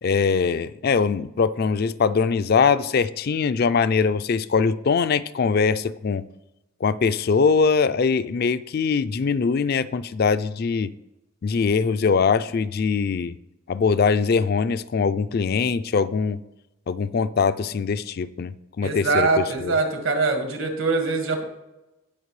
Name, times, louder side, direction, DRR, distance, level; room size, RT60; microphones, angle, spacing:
voice 1, 0.0-6.2 6.8-10.9 11.4-13.3 13.7-16.4 16.9-19.8, left 5 dB, 50° left, 14 dB, 0.4 m, -22 dB
voice 2, 18.8-21.4, right 3 dB, 80° right, 3 dB, 1.8 m, -23 dB
17.5 x 5.8 x 3.2 m, 0.95 s
head